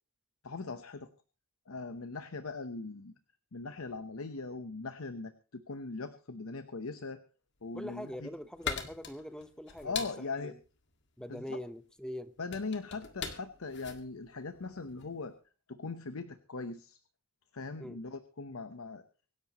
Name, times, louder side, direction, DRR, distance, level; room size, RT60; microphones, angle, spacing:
voice 1, 0.4-1.1 1.7-3.1 3.5-7.2 7.6-8.3 9.8-10.5 11.3-11.6 12.4-15.3 15.7-17.0 17.5-19.0, left 3 dB, 90° left, 10 dB, 0.9 m, -40 dB
voice 2, 7.7-10.0 10.4-10.5 11.2-12.3 17.8-18.0, equal, 5° left, 11 dB, 0.9 m, -43 dB
sound 1, 7.8-15.2, left 7 dB, 60° left, 1.9 m, -42 dB
24.5 x 11.0 x 3.0 m, 0.35 s
head